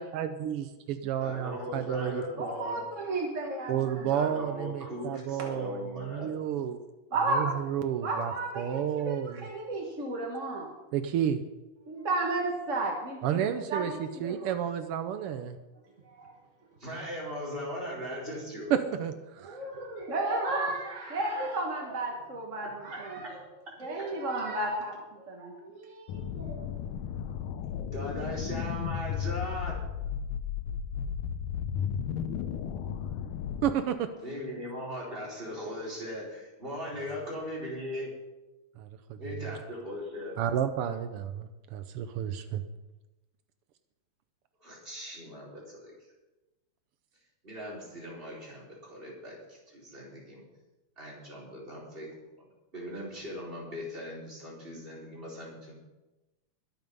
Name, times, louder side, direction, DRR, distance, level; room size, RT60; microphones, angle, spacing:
voice 1, 0.0-2.2 3.7-6.8 7.3-9.5 10.9-11.4 13.2-15.6 18.7-19.6 33.6-34.1 38.8-39.4 40.4-42.6, right 9 dB, 85° right, 9 dB, 1.2 m, -31 dB
voice 2, 1.2-2.9 4.1-6.3 16.8-18.7 23.2-23.3 23.6-23.7 27.9-29.8 34.2-38.1 39.2-40.4 44.6-45.9 47.4-50.4 51.0-52.5 52.7-55.7, equal, 15° right, -4 dB, 4.4 m, -39 dB
voice 3, 2.4-4.1 7.1-7.5 8.0-10.7 11.9-14.6 16.0-16.3 19.4-23.4 23.8-26.7, right 2 dB, 35° right, 0 dB, 1.3 m, -33 dB
sound 1, 26.1-33.7, left 8 dB, 90° left, 2.3 m, -34 dB
21.5 x 7.3 x 5.4 m, 1.1 s
omnidirectional pair, 3.5 m